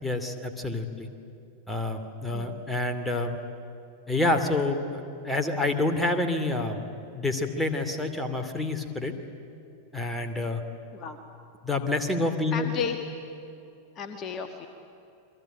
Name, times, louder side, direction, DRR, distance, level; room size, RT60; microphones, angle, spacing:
voice 1, 0.0-1.1 1.7-3.4 4.1-6.8 7.1-9.1 9.9-10.6 11.6-12.7, left 2 dB, 5° left, 6 dB, 2.6 m, -28 dB
voice 2, 2.3-2.6 10.9-11.2 12.5-13.0 13.9-14.7, left 7 dB, 30° left, 6 dB, 1.6 m, -33 dB
29.0 x 22.5 x 9.1 m, 2.7 s
figure-of-eight pair, 90°, 0 cm